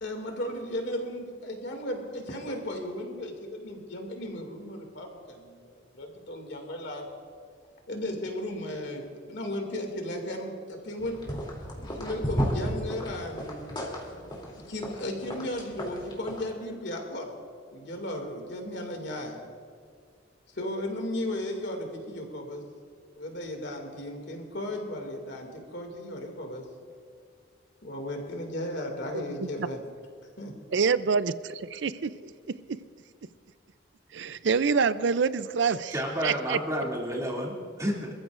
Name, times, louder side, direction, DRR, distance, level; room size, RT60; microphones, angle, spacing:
voice 1, 0.0-7.0 7.9-11.2 11.9-13.7 14.7-17.4 17.7-19.4 20.5-22.6 23.1-26.7 27.8-29.8 30.4-30.5, left 1 dB, 65° left, 2 dB, 2.4 m, -35 dB
sound 1, 11.0-16.4, equal, 25° left, 3.0 m, -34 dB
voice 2, 29.1-29.7 30.7-32.1 34.1-35.9 36.2-36.6, right 5 dB, 70° right, 14 dB, 0.5 m, -26 dB
voice 3, 35.9-38.1, equal, 20° right, -3 dB, 2.7 m, -30 dB
26.0 x 14.5 x 2.6 m, 2.1 s
head